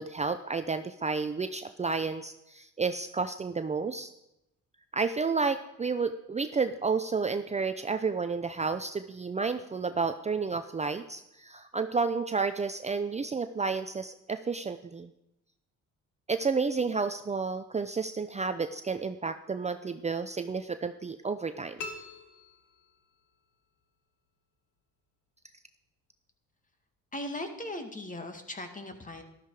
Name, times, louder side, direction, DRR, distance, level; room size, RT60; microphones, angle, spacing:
voice 1, 0.0-4.1 4.9-15.1 16.3-21.8, right 4 dB, 20° right, 9 dB, 0.6 m, -31 dB
sound 1, 21.8-23.3, left 3 dB, 80° left, 1.9 m, -43 dB
voice 2, 27.1-29.2, left 1 dB, 25° left, 6 dB, 2.2 m, -38 dB
13.0 x 12.5 x 4.9 m, 0.86 s
cardioid pair, 90°, 30 cm